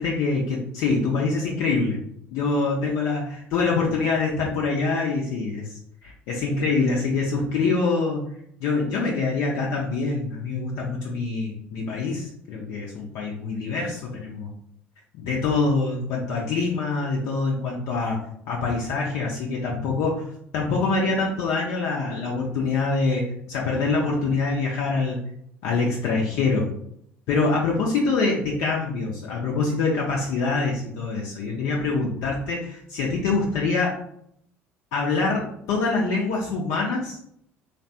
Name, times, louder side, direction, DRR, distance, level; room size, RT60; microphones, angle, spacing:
voice 1, 0.0-2.0 2.3-5.7 6.0-8.3 8.6-14.5 15.2-18.2 18.5-20.3 20.5-25.2 25.6-26.7 27.3-33.9 34.9-37.2, left 3 dB, 60° left, -2 dB, 0.6 m, -25 dB
3.1 x 2.1 x 2.7 m, 0.69 s
figure-of-eight pair, 60°, 7 cm